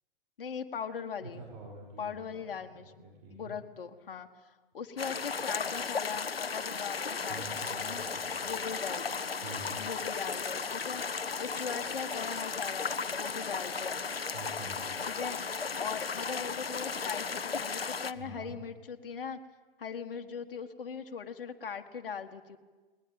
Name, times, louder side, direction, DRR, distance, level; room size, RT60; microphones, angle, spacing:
voice 1, 0.4-1.4 2.0-8.0 8.4-9.2 9.8-11.0 11.4-14.1 15.0-19.4 19.8-22.6, left 6 dB, 65° left, 5 dB, 1.7 m, -40 dB
voice 2, 1.2-3.6 7.3-8.5 9.4-9.8 14.3-14.9 18.2-18.6, right 3 dB, 50° right, 1 dB, 5.4 m, -47 dB
sound 1, 5.0-18.1, left 5 dB, 85° left, 1.0 m, -35 dB
20.5 x 20.0 x 8.9 m, 1.3 s
figure-of-eight pair, 110°, 29 cm